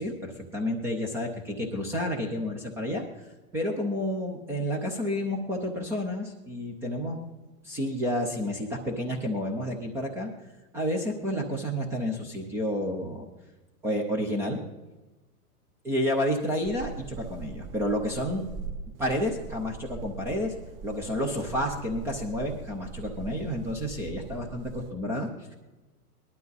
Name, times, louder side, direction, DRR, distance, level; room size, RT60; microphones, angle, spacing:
voice 1, 0.0-3.0 3.5-7.2 7.6-10.3 10.7-13.3 13.8-14.6 15.8-18.4 19.0-20.5 20.8-25.5, equal, 5° right, 1 dB, 0.4 m, -30 dB
sound 1, 16.6-24.9, right 5 dB, 40° right, 1.2 m, -41 dB
19.0 x 12.0 x 4.0 m, 1.1 s
hypercardioid pair, 145°, 45 cm